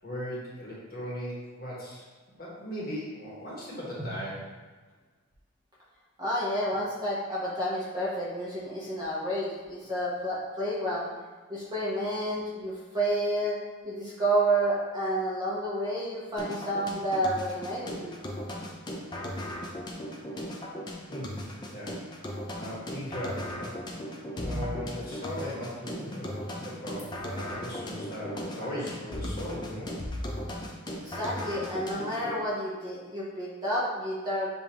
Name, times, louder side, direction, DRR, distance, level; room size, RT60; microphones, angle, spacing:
voice 1, 0.0-2.0 2.4-4.4 21.1-21.4 21.7-22.0 22.5-23.8 24.4-30.0, equal, 45° left, -6 dB, 1.4 m, -38 dB
voice 2, 6.2-11.1 11.5-13.6 13.8-18.2 24.5-24.7 31.0-34.5, right 1 dB, 20° right, -7 dB, 0.9 m, -30 dB
sound 1, 16.4-32.4, left 1 dB, 20° left, 0.4 m, -37 dB
6.8 x 2.7 x 2.9 m, 1.4 s
head